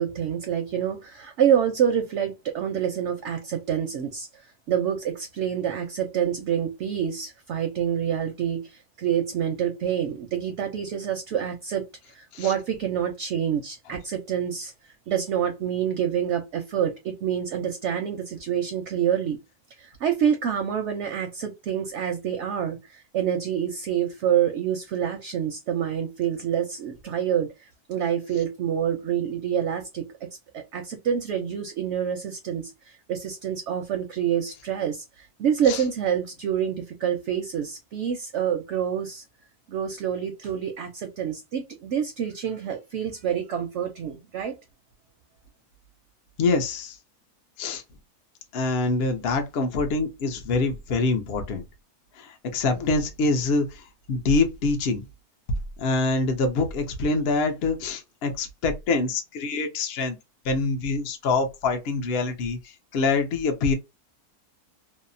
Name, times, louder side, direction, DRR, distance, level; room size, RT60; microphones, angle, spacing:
voice 1, 0.0-4.3 4.7-14.7 15.1-19.4 19.8-27.5 27.9-30.1 30.5-39.2 39.7-44.5, right 9 dB, 65° right, 0.7 m, -27 dB
voice 2, 46.4-47.0 47.6-47.8 48.5-51.6 52.1-55.0 55.8-60.2 60.4-63.7, left 3 dB, 65° left, 0.6 m, -25 dB
2.7 x 2.0 x 2.5 m
omnidirectional pair, 1.6 m